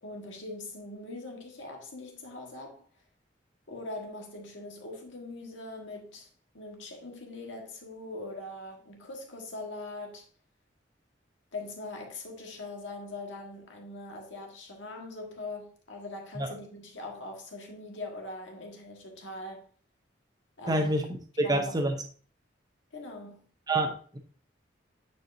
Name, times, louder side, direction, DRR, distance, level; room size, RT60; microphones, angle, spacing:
voice 1, 0.0-2.9 3.7-6.3 6.5-10.2 11.5-19.7 20.6-20.9 21.4-21.8 22.9-23.4, left 2 dB, 80° left, 1.6 m, -41 dB
voice 2, 20.7-21.1 21.4-21.9 23.7-24.2, right 1 dB, 20° right, 0.7 m, -27 dB
9.2 x 4.5 x 2.7 m
head